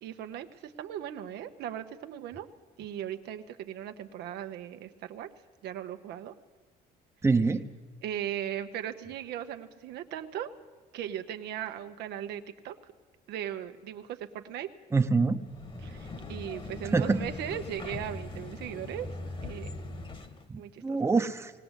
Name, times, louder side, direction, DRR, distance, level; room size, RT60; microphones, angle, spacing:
voice 1, 0.0-2.5 2.8-5.3 5.6-6.3 8.0-10.5 10.9-12.8 13.3-14.7 15.8-19.1 19.4-19.7 20.6-21.0, right 10 dB, 80° right, 7 dB, 1.1 m, -38 dB
voice 2, 7.2-7.7 14.9-15.4 16.9-17.2 20.5-21.5, right 4 dB, 15° right, 7 dB, 0.9 m, -25 dB
sound 1, 15.4-20.5, left 2 dB, 30° left, 1.5 m, -40 dB
19.5 x 17.5 x 8.1 m, 1.4 s
cardioid pair, 110°, 17 cm